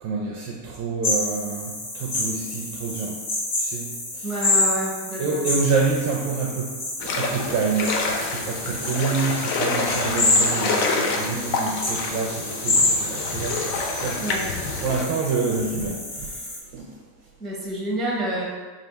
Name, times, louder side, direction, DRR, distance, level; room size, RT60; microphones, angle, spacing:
voice 1, 0.0-3.2 3.6-4.3 5.2-6.8 7.0-14.2 14.8-17.0, right 4 dB, 35° right, -2 dB, 0.4 m, -27 dB
sound 1, 1.0-16.6, left 2 dB, 40° left, 1.5 m, -28 dB
voice 2, 4.2-5.5 14.2-14.5 17.4-18.5, right 1 dB, ahead, -5 dB, 0.7 m, -28 dB
sound 2, 7.0-15.1, left 3 dB, 65° left, 0.7 m, -27 dB
3.3 x 2.4 x 4.4 m, 1.4 s
supercardioid pair, 145°, 48 cm